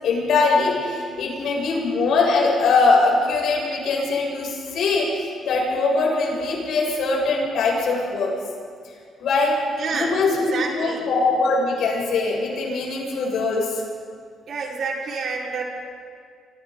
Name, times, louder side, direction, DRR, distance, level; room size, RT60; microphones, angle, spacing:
voice 1, 0.0-5.1 5.4-8.3 9.2-9.6 9.9-13.8, left 3 dB, 75° left, -2 dB, 7.3 m, -21 dB
voice 2, 9.8-11.1 14.5-15.6, right 4 dB, 65° right, -2 dB, 4.9 m, -28 dB
27.0 x 26.0 x 4.0 m, 2.1 s
cardioid pair, 90°, 0 cm